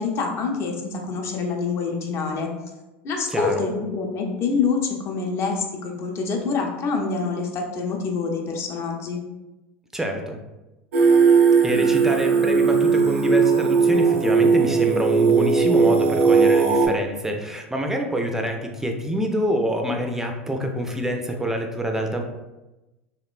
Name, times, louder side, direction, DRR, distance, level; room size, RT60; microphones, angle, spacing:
voice 1, 0.0-2.5 3.0-9.2, left 4 dB, 40° left, 1 dB, 0.5 m, -26 dB
voice 2, 3.3-3.6 9.9-10.4 11.6-22.2, equal, 5° right, 3 dB, 0.4 m, -26 dB
Singing, 10.9-16.9, right 5 dB, 75° right, 0.4 m, -18 dB
2.9 x 2.1 x 2.4 m, 1.0 s
hypercardioid pair, 85°, 7 cm